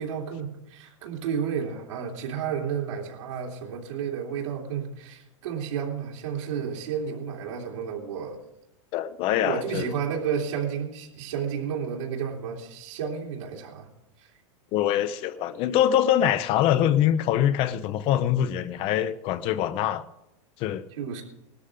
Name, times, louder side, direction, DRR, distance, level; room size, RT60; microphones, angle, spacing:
voice 1, 0.0-8.4 9.4-13.9 14.2-14.3 20.9-21.2, right 7 dB, 85° right, 3.0 m, -31 dB
voice 2, 8.9-9.9 14.7-20.0 20.6-20.8, left 11 dB, 35° left, 0.6 m, -24 dB
18.5 x 13.0 x 3.7 m
supercardioid pair, 150°, 16 cm